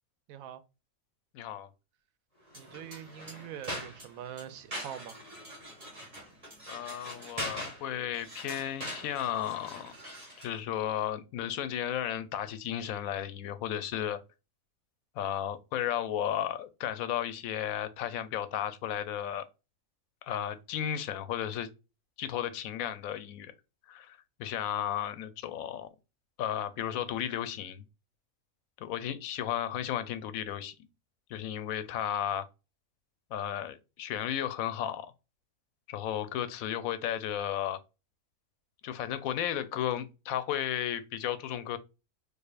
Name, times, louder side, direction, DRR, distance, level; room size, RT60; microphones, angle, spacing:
voice 1, 0.3-0.6 2.6-5.2, right 10 dB, 85° right, 1.0 m, -43 dB
voice 2, 1.3-1.7 6.7-9.9 10.4-14.2 15.2-19.4 20.2-21.7 22.2-23.5 23.9-25.9 26.4-27.8 28.8-30.7 31.3-32.5 33.3-35.1 35.9-37.8 38.8-41.8, left 10 dB, 85° left, 1.0 m, -34 dB
sound 1, 2.5-10.6, equal, 25° right, 1.6 m, -43 dB
4.8 x 2.4 x 2.3 m
omnidirectional pair, 1.4 m